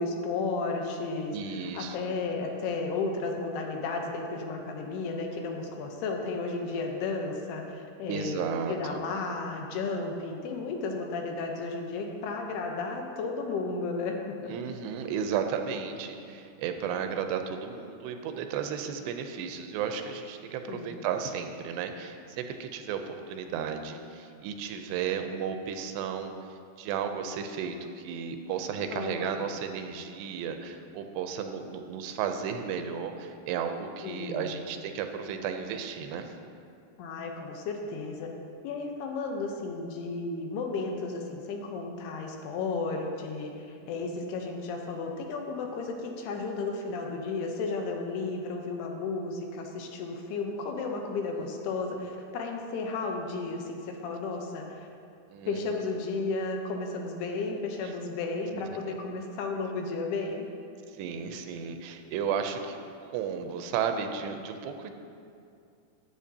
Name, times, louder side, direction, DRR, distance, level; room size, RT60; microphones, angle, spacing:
voice 1, 0.0-14.5 20.7-21.0 28.9-29.4 34.0-34.6 37.0-38.3 38.6-54.9 55.5-60.5, left 3 dB, 80° left, 2 dB, 2.8 m, -33 dB
voice 2, 1.3-2.0 8.1-9.0 14.4-26.3 26.8-36.3 43.8-44.0 55.3-55.6 61.0-64.9, right 7 dB, 90° right, 6 dB, 2.8 m, -34 dB
14.0 x 9.6 x 2.8 m, 2.4 s
omnidirectional pair, 4.8 m